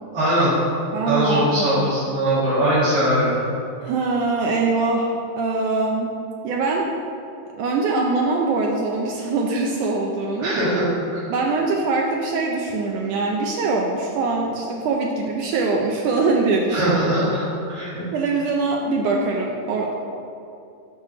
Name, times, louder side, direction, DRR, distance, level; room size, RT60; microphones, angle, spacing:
voice 1, 0.1-0.5 1.1-3.4 10.4-11.2 16.7-17.9, right 1 dB, 65° right, -13 dB, 3.8 m, -21 dB
voice 2, 0.9-1.9 3.8-6.1 6.4-6.9 7.6-10.5 11.3-17.0 18.1-20.0, right 3 dB, 85° right, 0 dB, 1.8 m, -23 dB
9.4 x 3.8 x 6.5 m, 2.6 s
omnidirectional pair, 4.3 m